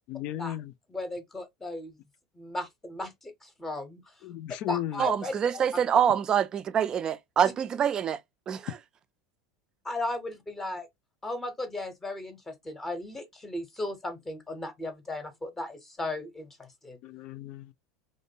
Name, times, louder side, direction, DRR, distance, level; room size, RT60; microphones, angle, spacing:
voice 1, 0.1-0.7 4.2-5.0 17.0-17.7, left 13 dB, 55° left, 0.3 m, -35 dB
voice 2, 0.9-2.0 2.4-4.1 4.7-5.8 7.4-7.5 9.8-10.9 11.2-17.0, left 2 dB, 15° left, 0.7 m, -36 dB
voice 3, 5.0-8.2 8.5-8.6, right 8 dB, 35° right, 0.4 m, -25 dB
2.5 x 2.1 x 2.7 m
hypercardioid pair, 90°, 2 cm